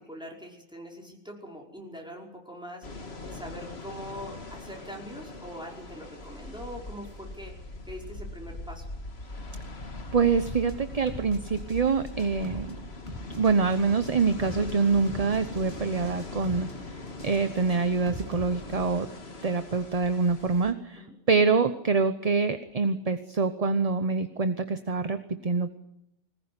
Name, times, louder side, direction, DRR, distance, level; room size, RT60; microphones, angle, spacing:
voice 1, 0.0-7.5 7.9-8.9 21.0-21.1, equal, 5° right, -1 dB, 5.4 m, -43 dB
sound 1, 2.8-20.7, left 2 dB, 60° left, 2.2 m, -41 dB
voice 2, 10.1-12.7 13.3-16.7 17.2-19.1 19.4-25.8, right 4 dB, 35° right, 10 dB, 1.0 m, -25 dB
sound 2, 10.4-10.7 11.1-11.8 12.1-12.7 13.1-13.7 14.1-14.7 15.1-15.8 16.1-16.7 17.1-18.4, equal, 25° left, 3.1 m, -42 dB
21.5 x 19.5 x 9.7 m, 0.83 s
omnidirectional pair, 1.2 m